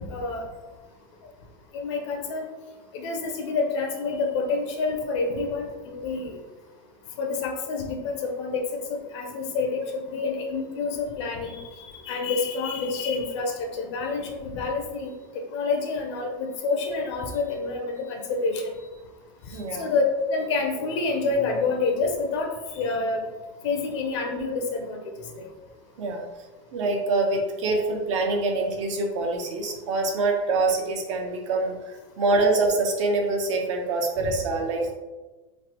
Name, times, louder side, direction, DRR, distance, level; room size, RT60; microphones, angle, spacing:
voice 1, 0.1-0.4 1.7-2.5 2.9-6.4 7.2-8.6 8.9-9.8 10.0-15.1 15.5-18.6 19.8-20.0 20.3-22.5 22.8-23.2 23.6-25.0 34.3-34.4, left 4 dB, 65° left, 2 dB, 0.5 m, -28 dB
voice 2, 19.5-19.9 26.0-26.2 26.7-34.9, right 3 dB, 80° right, 1 dB, 0.7 m, -25 dB
3.1 x 2.0 x 2.8 m, 1.2 s
supercardioid pair, 155°, 16 cm